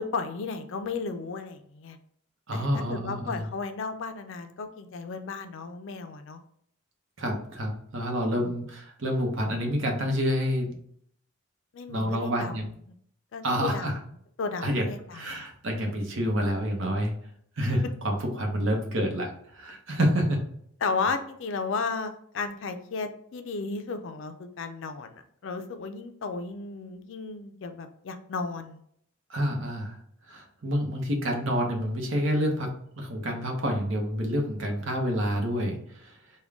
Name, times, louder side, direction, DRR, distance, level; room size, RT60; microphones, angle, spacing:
voice 1, 0.0-2.0 2.5-6.4 8.3-8.6 11.7-12.6 13.3-13.9 14.4-15.4 20.0-20.1 20.8-28.8, left 4 dB, 60° left, 8 dB, 0.4 m, -34 dB
voice 2, 2.5-3.5 7.2-10.7 11.9-12.7 13.4-14.0 14.6-14.8 15.1-17.1 17.6-20.4 29.3-30.0 30.3-36.1, equal, 65° right, 2 dB, 0.8 m, -28 dB
3.6 x 2.2 x 3.4 m, 0.67 s
head